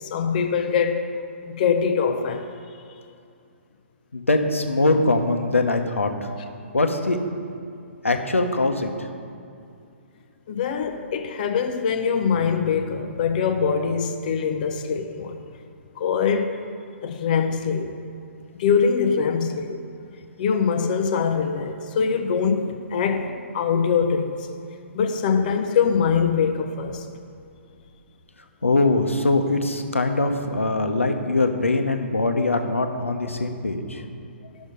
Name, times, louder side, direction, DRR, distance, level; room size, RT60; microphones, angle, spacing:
voice 1, 0.1-1.1 1.5-2.5 10.5-15.4 16.0-16.5 17.0-17.9 18.6-19.8 20.4-24.3 24.9-27.1, left 6 dB, 40° left, 0.6 m, -23 dB
voice 2, 4.1-6.1 6.7-7.2 8.0-8.9 28.6-34.0, left 2 dB, 80° left, 0.9 m, -22 dB
12.5 x 6.3 x 5.1 m
figure-of-eight pair, 125°, 7 cm